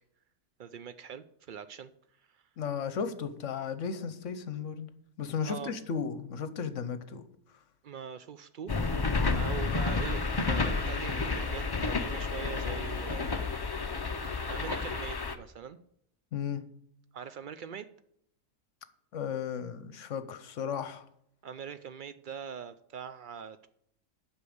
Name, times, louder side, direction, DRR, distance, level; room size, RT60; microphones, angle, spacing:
voice 1, 0.6-1.9 2.3-2.4 5.4-5.7 7.8-8.7 9.0-13.5 14.5-15.8 17.1-17.9 21.4-23.7, right 7 dB, 80° right, 0.4 m, -42 dB
voice 2, 2.6-4.9 5.2-7.2 9.2-9.4 16.3-16.6 19.1-21.1, left 6 dB, 65° left, 1.1 m, -35 dB
sound 1, 8.7-15.3, left 4 dB, 35° left, 0.3 m, -31 dB
8.4 x 6.2 x 7.8 m
omnidirectional pair, 1.5 m